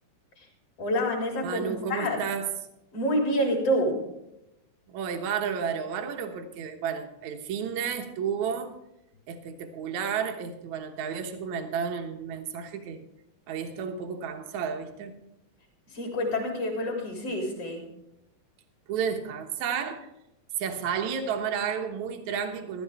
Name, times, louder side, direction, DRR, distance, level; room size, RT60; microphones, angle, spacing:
voice 1, 0.8-2.2 2.9-4.0 15.9-17.8, equal, 35° left, 3.9 m, -28 dB
voice 2, 1.4-2.5 4.9-8.8 9.3-13.0 13.5-15.1 18.9-20.1 20.6-22.8, right 7 dB, 70° right, 1.8 m, -32 dB
14.5 x 13.5 x 3.5 m
omnidirectional pair, 5.0 m